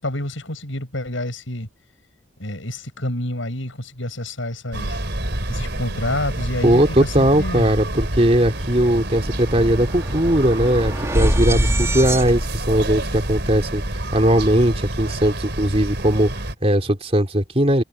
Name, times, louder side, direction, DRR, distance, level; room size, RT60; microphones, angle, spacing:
voice 1, 0.0-1.7 2.4-5.0 5.5-7.7 11.5-12.0, left 1 dB, 75° left, 7.0 m, -28 dB
sound 1, 4.7-16.5, right 1 dB, 55° right, 5.4 m, -28 dB
voice 2, 6.6-17.8, right 1 dB, 30° right, 3.8 m, -19 dB
sound 2, 8.1-8.2 8.4-14.7, right 1 dB, 15° right, 5.1 m, -26 dB
head